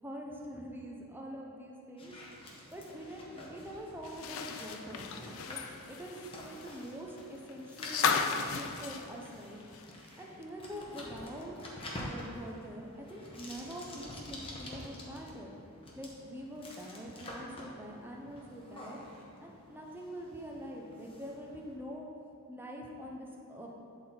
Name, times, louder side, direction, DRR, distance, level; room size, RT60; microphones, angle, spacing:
voice 1, 0.0-2.1 2.7-5.1 5.5-5.6 5.9-8.2 8.5-9.6 10.2-11.5 11.9-15.6 16.0-19.0 19.4-22.1 22.5-23.7, equal, 10° right, -1 dB, 0.7 m, -44 dB
sound 1, 2.0-21.8, left 1 dB, 25° left, 1.0 m, -48 dB
sound 2, 4.0-10.1 10.4-10.5 11.9-12.0, left 6 dB, 60° left, 0.4 m, -35 dB
8.9 x 3.9 x 4.3 m, 2.8 s
head